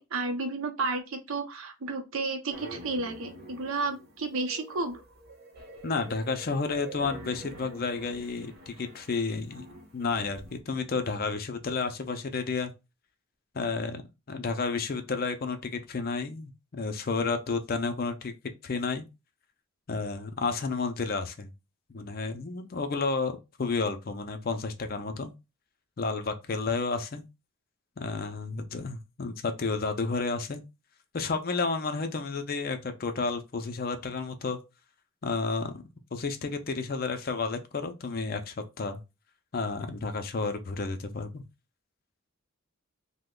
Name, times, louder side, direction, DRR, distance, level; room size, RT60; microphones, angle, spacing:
voice 1, 0.0-5.0, right 3 dB, 70° right, 0.6 m, -32 dB
sound 1, 2.5-10.6, right 1 dB, 45° right, 0.9 m, -47 dB
voice 2, 5.8-9.7 9.9-12.7 13.5-14.0 14.3-18.3 18.6-19.1 19.9-21.5 21.9-25.3 26.0-27.2 28.0-30.6 31.1-34.6 35.2-35.8 36.1-39.0 39.5-41.4, left 4 dB, 40° left, 0.4 m, -31 dB
3.0 x 2.1 x 3.6 m
head